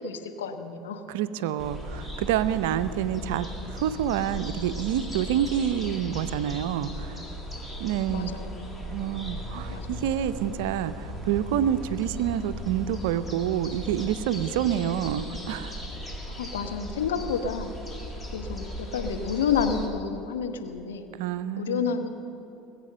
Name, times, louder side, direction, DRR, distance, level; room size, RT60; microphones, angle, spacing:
voice 1, 0.0-1.0 8.1-8.7 9.7-10.0 16.3-17.7 18.3-21.1 21.6-22.1, left 6 dB, 75° left, 6 dB, 1.0 m, -30 dB
voice 2, 1.1-7.3 7.8-8.3 8.9-15.8 21.2-21.8, right 10 dB, 70° right, 14 dB, 0.5 m, -28 dB
sound 1, 1.6-19.9, equal, 15° left, 2.2 m, -37 dB
20.0 x 8.2 x 6.6 m, 2.9 s
hypercardioid pair, 75°, 0 cm